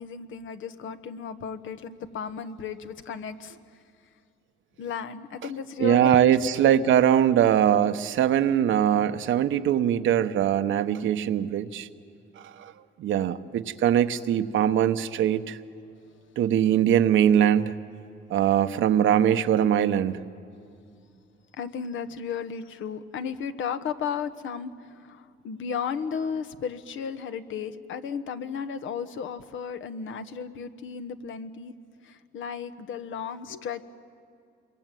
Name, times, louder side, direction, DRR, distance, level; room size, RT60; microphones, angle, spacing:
voice 1, 0.0-3.6 4.8-6.8 9.5-9.6 21.5-31.7 32.0-33.8, left 6 dB, 75° left, 10 dB, 1.3 m, -34 dB
voice 2, 5.8-11.9 12.4-12.7 13.0-15.6 16.4-17.8 18.3-20.2, right 10 dB, 75° right, 10 dB, 1.1 m, -22 dB
27.0 x 22.5 x 9.2 m, 2.4 s
cardioid pair, 90°, 20 cm